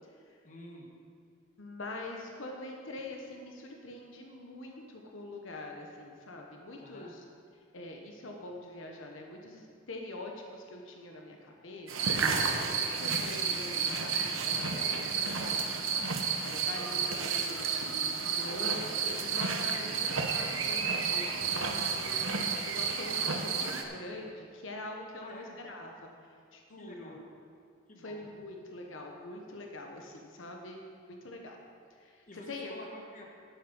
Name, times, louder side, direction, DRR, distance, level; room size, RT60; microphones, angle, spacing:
voice 1, 0.4-0.8 6.8-7.1 12.9-13.1 14.7-15.0 19.8-20.0 25.2-25.6 26.8-27.2 27.9-28.2 32.3-33.2, left 1 dB, 40° left, 0 dB, 1.4 m, -50 dB
voice 2, 1.6-7.2 7.7-12.3 12.6-26.1 26.5-27.2 28.0-30.8 31.1-31.6 32.0-32.8, left 2 dB, 75° left, 1 dB, 1.1 m, -44 dB
sound 1, 11.9-23.8, right 5 dB, 85° right, 1.0 m, -31 dB
10.5 x 8.1 x 5.4 m, 2.2 s
head